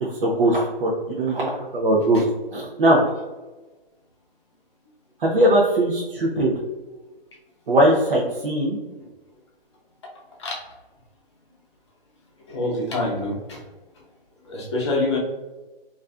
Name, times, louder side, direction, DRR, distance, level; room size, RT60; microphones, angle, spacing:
voice 1, 0.0-2.2 2.5-3.0 5.2-6.5 7.7-8.8, right 1 dB, 60° right, -4 dB, 0.6 m, -20 dB
voice 2, 12.5-13.6 14.4-15.2, left 2 dB, 30° left, -3 dB, 0.6 m, -26 dB
2.5 x 2.3 x 2.3 m, 1.2 s
hypercardioid pair, 150°, 30 cm